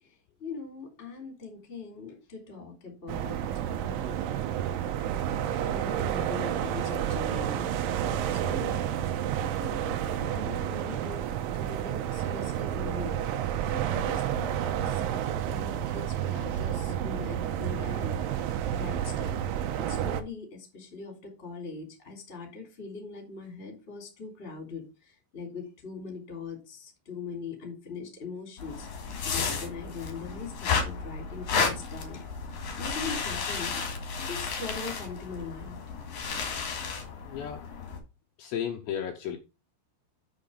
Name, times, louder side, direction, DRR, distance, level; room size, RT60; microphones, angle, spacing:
voice 1, 0.4-3.4 3.7-4.2 4.9-5.0 5.5-7.7 8.3-8.8 9.3-11.2 11.5-18.2 18.8-32.2 32.8-33.8 34.3-35.8 37.3-37.4, left 4 dB, 20° left, 2.4 m, -41 dB
sound 1, 3.1-20.2, right 10 dB, 80° right, 3.2 m, -30 dB
sound 2, 28.6-38.0, left 5 dB, 50° left, 2.5 m, -33 dB
voice 2, 37.2-37.6 38.4-39.4, left 9 dB, 75° left, 2.8 m, -33 dB
8.1 x 5.9 x 5.0 m
omnidirectional pair, 5.7 m